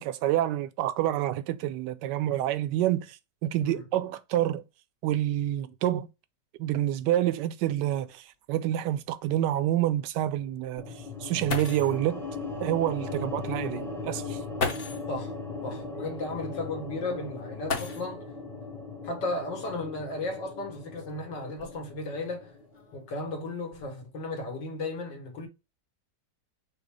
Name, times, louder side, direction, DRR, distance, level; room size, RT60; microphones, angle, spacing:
voice 1, 0.0-3.2 3.4-4.6 5.0-6.1 6.6-8.2 8.5-10.8 11.2-12.2 12.6-14.4, right 13 dB, 80° right, 1.2 m, -27 dB
sound 1, 7.6-7.7 8.1-8.2 8.8-8.9 11.1-11.2 11.5-12.0 13.3-13.4 14.5-15.1 17.6-18.4 19.8-19.9 20.6-22.0 22.7-23.1 23.5-23.9, left 4 dB, 45° left, 0.8 m, -35 dB
sound 2, 10.8-23.0, left 3 dB, 5° left, 0.5 m, -38 dB
voice 2, 15.6-18.3 19.0-22.5 22.9-25.5, left 2 dB, 85° left, 1.9 m, -35 dB
5.1 x 2.0 x 4.6 m
omnidirectional pair, 1.9 m